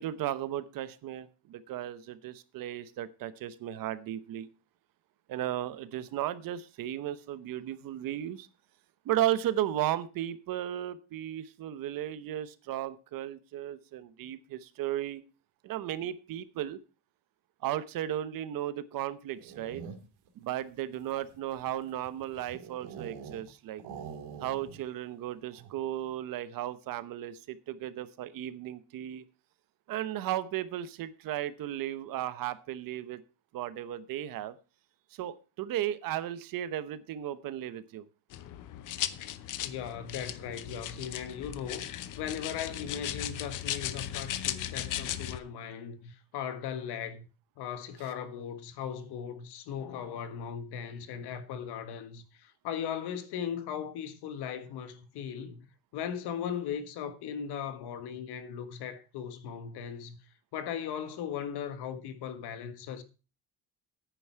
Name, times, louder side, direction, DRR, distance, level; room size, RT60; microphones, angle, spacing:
voice 1, 0.0-4.5 5.3-8.5 9.1-15.2 15.6-16.8 17.6-19.8 20.4-23.8 24.4-29.2 29.9-33.2 33.5-34.5 35.2-38.0, right 12 dB, 60° right, 1.0 m, -35 dB
sound 1, 19.3-20.3 20.9-23.5 23.8-24.9 25.1-25.2 25.5-25.9, right 7 dB, 80° right, 2.5 m, -45 dB
sound 2, 38.3-45.4, left 12 dB, 50° left, 0.8 m, -37 dB
voice 2, 39.6-47.2 47.6-55.6 55.9-60.2 60.5-63.0, left 8 dB, 80° left, 1.6 m, -38 dB
10.0 x 9.4 x 4.5 m
cardioid pair, 180°, 39 cm